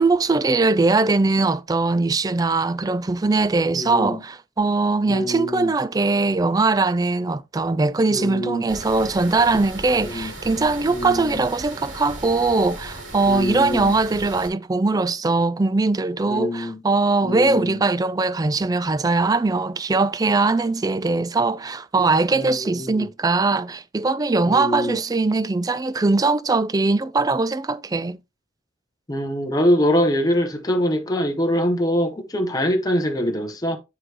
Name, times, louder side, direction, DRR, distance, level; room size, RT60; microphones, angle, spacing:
voice 1, 0.0-28.2, right 3 dB, 20° right, 0.3 m, -21 dB
voice 2, 3.7-4.2 5.1-5.7 8.1-8.6 10.0-10.3 10.9-11.4 13.3-13.9 16.3-16.8 17.2-17.8 22.3-23.1 24.5-25.0 29.1-33.8, equal, 20° left, 0.8 m, -24 dB
sound 1, 8.7-14.5, right 1 dB, 90° right, 2.9 m, -37 dB
9.9 x 4.7 x 2.9 m
head